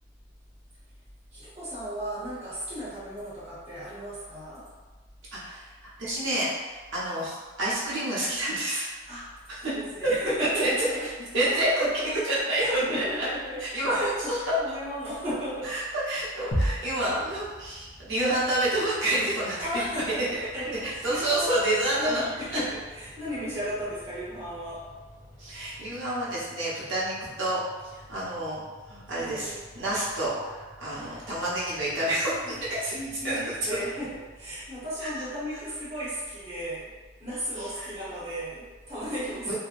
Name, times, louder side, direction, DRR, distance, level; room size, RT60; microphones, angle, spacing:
voice 1, 1.3-4.7 9.1-9.3 9.6-11.1 11.4-12.1 12.6-15.8 19.6-20.3 20.5-21.7 22.0-24.8 29.1-29.7 30.9-31.3 32.4-32.6 32.9-36.9 37.2-39.5, equal, 30° right, -11 dB, 0.8 m, -35 dB
voice 2, 5.3-5.6 6.0-8.9 10.4-10.7 11.3-12.6 12.9-13.0 13.6-13.9 14.5-14.8 15.7-19.6 20.3-20.5 20.8-22.2 22.5-22.6 25.4-27.6 27.9-28.6 28.9-32.4 32.8-32.9 33.2-33.4 33.7-33.8 37.6-37.9 39.5-39.6, right 1 dB, 75° right, -8 dB, 0.9 m, -28 dB
sound 1, 16.5-34.7, equal, 55° left, 0.5 m, -41 dB
2.8 x 2.1 x 2.4 m, 1.3 s
head